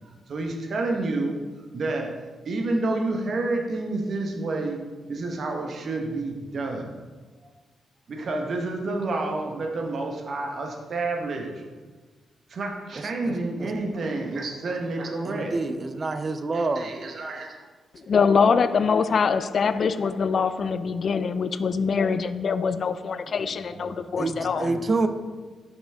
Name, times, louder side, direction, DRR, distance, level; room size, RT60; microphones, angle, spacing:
voice 1, 0.3-1.4 1.7-2.1 2.4-4.8 5.1-7.0 8.1-11.6 12.5-15.6 16.5-17.6 23.4-24.8, right 2 dB, 60° right, 2 dB, 1.1 m, -29 dB
voice 2, 13.0-13.8 15.3-16.9 24.2-25.1, right 3 dB, 45° right, 10 dB, 0.6 m, -28 dB
voice 3, 17.9-24.7, left 5 dB, 60° left, 13 dB, 0.3 m, -23 dB
6.1 x 6.1 x 3.5 m, 1.4 s
supercardioid pair, 45°, 0 cm